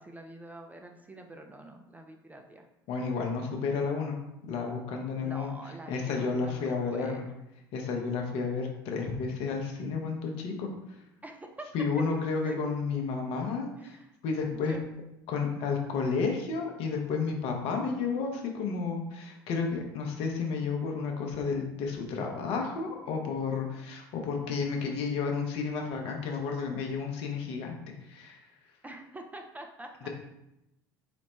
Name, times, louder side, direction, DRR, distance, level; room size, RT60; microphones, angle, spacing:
voice 1, 0.0-2.7 5.2-7.3 11.2-12.6 13.8-14.1 14.5-14.8 28.8-30.1, right 1 dB, 15° right, 3 dB, 0.3 m, -45 dB
voice 2, 2.9-4.1 4.5-5.5 5.9-7.2 7.7-10.7 11.7-14.0 14.2-14.7 15.3-28.4 30.0-30.1, left 5 dB, 55° left, 2 dB, 0.7 m, -31 dB
4.1 x 2.1 x 3.0 m, 0.89 s
hypercardioid pair, 70°, 12 cm